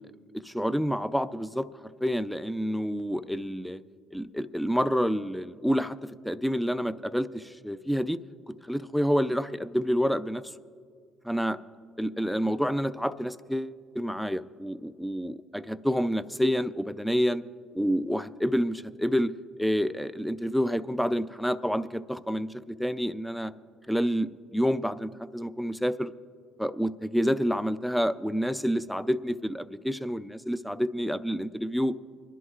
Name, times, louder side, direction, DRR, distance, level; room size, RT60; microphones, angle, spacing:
voice 1, 0.4-1.7 2.0-3.8 4.1-8.2 8.5-10.4 11.2-11.6 12.0-17.4 17.7-19.3 19.6-23.5 23.9-26.1 26.6-32.0, equal, ahead, 14 dB, 0.4 m, -28 dB
27.5 x 11.0 x 2.4 m, 2.1 s
cardioid pair, 90°, 0 cm